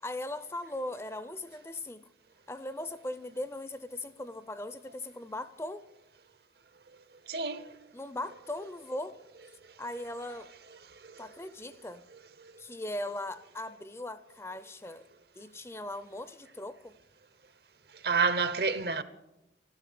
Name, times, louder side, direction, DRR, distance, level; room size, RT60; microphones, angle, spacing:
voice 1, 0.0-2.0 2.5-5.8 7.9-9.2 9.8-10.5 11.2-12.0 12.6-15.0 15.4-16.9, left 1 dB, 15° left, 0.5 m, -39 dB
voice 2, 7.3-7.8 9.7-9.8 10.9-11.3 12.4-12.5 17.9-19.0, right 5 dB, 60° right, 0.9 m, -30 dB
12.5 x 12.5 x 8.5 m
head